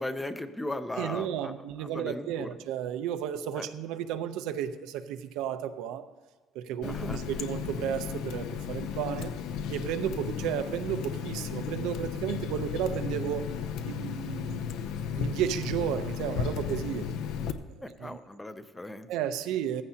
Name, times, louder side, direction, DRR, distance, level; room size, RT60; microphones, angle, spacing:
voice 1, 0.0-1.5 1.8-2.5 3.5-3.7 6.8-7.2 17.8-19.1, left 1 dB, 5° left, 0.5 m, -37 dB
voice 2, 1.0-6.1 6.5-9.3 9.7-13.5 13.8-14.7 15.2-17.1 17.8-18.2 19.1-19.8, right 10 dB, 85° right, 0.7 m, -33 dB
Water tap faucet, 6.8-17.5, left 7 dB, 70° left, 0.7 m, -34 dB
16.0 x 14.5 x 2.9 m
cardioid pair, 180°, 0 cm